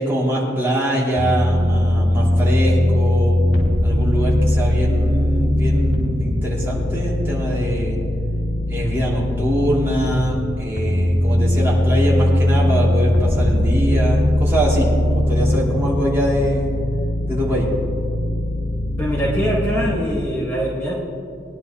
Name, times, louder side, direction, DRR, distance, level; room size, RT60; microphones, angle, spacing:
voice 1, 0.0-3.4 3.8-8.0 8.7-16.7 17.3-17.7, equal, 15° right, -6 dB, 2.7 m, -23 dB
sound 1, 1.2-10.3 10.8-19.9, left 1 dB, 80° left, 2.7 m, -20 dB
voice 2, 19.0-20.9, equal, 10° left, -7 dB, 1.6 m, -22 dB
20.5 x 11.0 x 3.0 m, 2.6 s
head